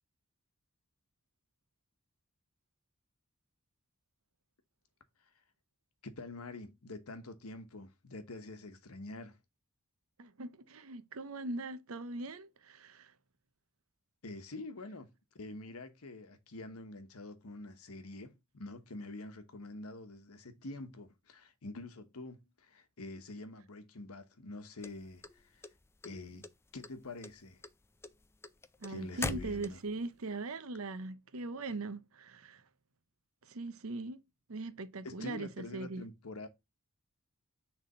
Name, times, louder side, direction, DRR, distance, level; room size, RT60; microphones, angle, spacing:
voice 1, 6.0-9.4 14.2-25.6 26.0-26.5 26.7-27.6 28.9-29.8 35.0-36.5, left 2 dB, 90° left, 1.1 m, -46 dB
voice 2, 10.2-13.2 28.8-32.7 33.4-34.2 34.5-36.0, right 2 dB, 70° right, 0.7 m, -41 dB
sound 1, 24.8-26.1 26.4-26.9 27.2-30.0, left 3 dB, 10° left, 0.4 m, -40 dB
6.5 x 3.5 x 5.3 m
head